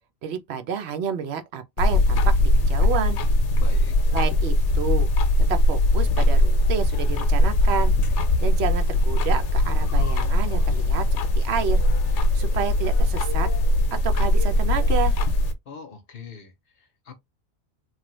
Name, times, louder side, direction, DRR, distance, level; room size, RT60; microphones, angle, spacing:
voice 1, 0.2-3.2 4.1-5.1 5.5-7.9 8.4-11.0 11.3-11.8 12.3-13.5 13.9-15.1, right 7 dB, 70° right, 0.8 m, -29 dB
sound 1, 1.8-15.5, left 1 dB, 90° left, 0.9 m, -20 dB
voice 2, 3.6-4.0 15.7-17.2, left 6 dB, 60° left, 0.8 m, -42 dB
3.1 x 2.1 x 3.0 m
omnidirectional pair, 1.2 m